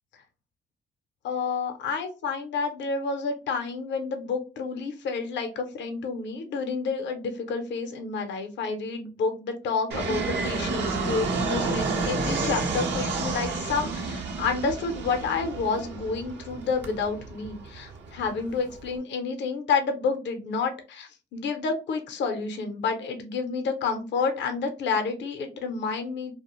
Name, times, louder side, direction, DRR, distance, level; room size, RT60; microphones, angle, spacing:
voice 1, 1.2-26.4, left 4 dB, 65° left, 6 dB, 0.6 m, -29 dB
Fixed-wing aircraft airplane, 9.9-18.9, right 4 dB, 60° right, 0.7 m, -30 dB
2.4 x 2.1 x 2.9 m, 0.34 s
cardioid pair, 90°, 20 cm